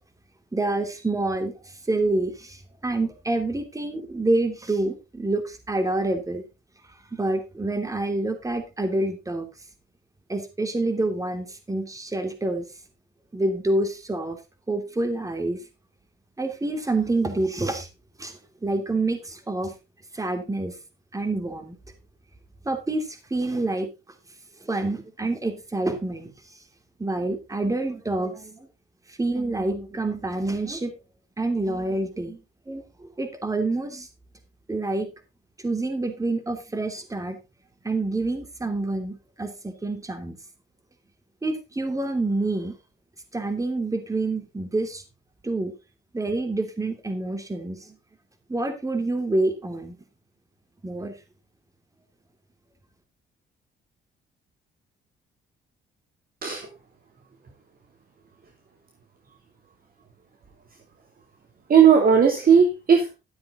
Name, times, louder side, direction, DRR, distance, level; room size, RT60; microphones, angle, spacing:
voice 1, 0.5-1.5 1.9-6.4 7.1-9.5 10.3-12.6 13.3-14.4 14.7-15.6 16.4-17.9 18.2-19.7 20.1-20.7 21.1-21.7 22.6-23.9 24.6-26.3 27.0-28.7 29.1-30.9 31.4-32.4 32.7-34.1 34.7-35.1 35.6-37.4 37.8-39.5 39.8-40.4 41.4-42.7 43.3-45.0 45.4-45.7 46.1-48.0 48.5-49.9 50.8-51.1, right 2 dB, 15° right, 7 dB, 3.0 m, -27 dB
voice 2, 61.7-63.1, right 7 dB, 45° right, 3 dB, 2.9 m, -17 dB
14.0 x 7.8 x 3.9 m, 0.27 s
cardioid pair, 90°, 20 cm